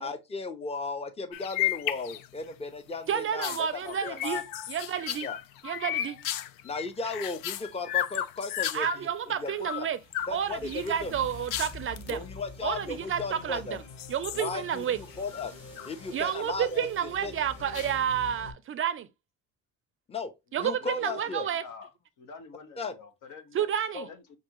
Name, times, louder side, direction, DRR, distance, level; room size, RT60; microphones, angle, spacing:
voice 1, 0.0-4.4 5.2-5.4 6.6-9.9 10.3-11.1 12.1-13.8 14.3-15.5 15.9-17.3 20.1-20.3 20.6-21.5 22.8-22.9 23.9-24.1, left 3 dB, 20° left, 0.7 m, -36 dB
sound 1, 1.3-2.5 2.9-9.0 9.5-10.3 10.7-12.2 13.0-13.5 13.9-15.9 16.2-16.9 17.7-18.3, left 12 dB, 85° left, 0.5 m, -34 dB
voice 2, 3.1-4.4 4.7-5.3 5.6-6.2 8.7-10.0 10.3-12.2 12.6-13.8 14.1-15.0 16.1-19.1 20.5-21.6 23.5-24.1, right 9 dB, 40° right, 0.4 m, -30 dB
sound 2, 10.0-18.5, left 2 dB, 40° left, 2.2 m, -46 dB
voice 3, 20.5-21.9 22.2-23.7 24.0-24.4, left 4 dB, 65° left, 1.2 m, -48 dB
5.9 x 2.7 x 2.9 m
cardioid pair, 125°, 33 cm